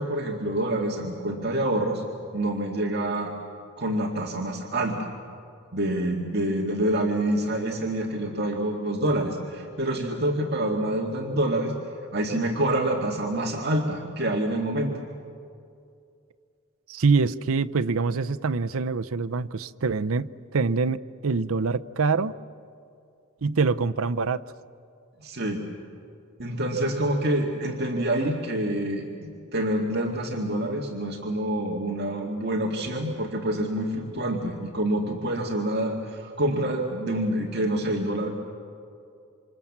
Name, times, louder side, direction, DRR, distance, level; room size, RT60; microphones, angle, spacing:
voice 1, 0.0-2.0 2.3-3.3 3.8-5.0 5.7-11.7 12.1-15.0 25.2-25.6 26.4-38.3, right 1 dB, 50° right, 2.2 m, -27 dB
voice 2, 16.9-22.3 23.4-24.4, right 4 dB, 75° right, 0.6 m, -25 dB
27.5 x 26.5 x 7.4 m
head